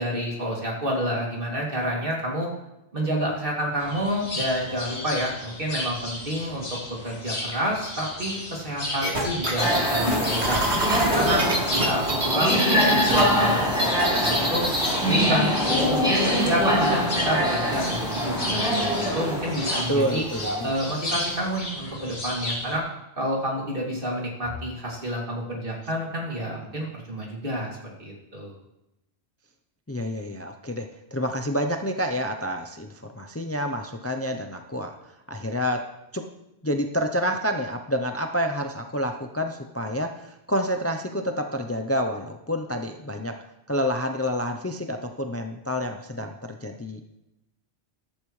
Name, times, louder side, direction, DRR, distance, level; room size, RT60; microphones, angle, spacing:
voice 1, 0.0-2.5 2.9-10.7 11.1-13.7 14.2-14.7 15.1-20.3 20.6-22.8 23.2-28.6, equal, 55° right, -3 dB, 3.0 m, -29 dB
sound 1, 3.8-22.8, left 1 dB, 90° left, 2.9 m, -33 dB
sound 2, 9.0-13.2 13.5-14.9, right 1 dB, 85° right, 2.7 m, -26 dB
sound 3, 9.6-21.1, equal, 5° right, 4.5 m, -24 dB
voice 2, 19.9-20.7 29.9-35.0 35.3-35.9 36.1-36.3 36.6-43.4 43.7-47.0, equal, 15° left, 5 dB, 0.6 m, -28 dB
14.0 x 12.0 x 3.3 m, 0.91 s
omnidirectional pair, 1.1 m